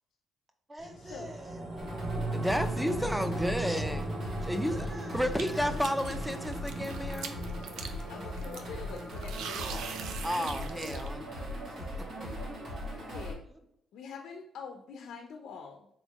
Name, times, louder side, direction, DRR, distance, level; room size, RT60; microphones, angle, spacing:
voice 1, 0.7-1.7 2.8-3.3 4.4-5.6 11.9-13.6, right 1 dB, 20° right, 4 dB, 0.8 m, -49 dB
sound 1, 0.8-11.4 11.8-11.9, right 2 dB, 40° right, 1.6 m, -39 dB
sound 2, 1.8-13.3, equal, 65° right, 1.4 m, -39 dB
voice 2, 2.3-4.1 4.4-4.7 5.1-7.4 10.2-11.3, equal, ahead, 9 dB, 0.5 m, -31 dB
sound 3, 5.4-11.1, right 6 dB, 85° right, 0.4 m, -43 dB
voice 3, 8.1-10.0 10.2-10.6 13.0-13.4 13.9-15.9, left 6 dB, 80° left, 3 dB, 0.5 m, -45 dB
4.1 x 3.6 x 3.0 m, 0.72 s
cardioid pair, 90°, 0 cm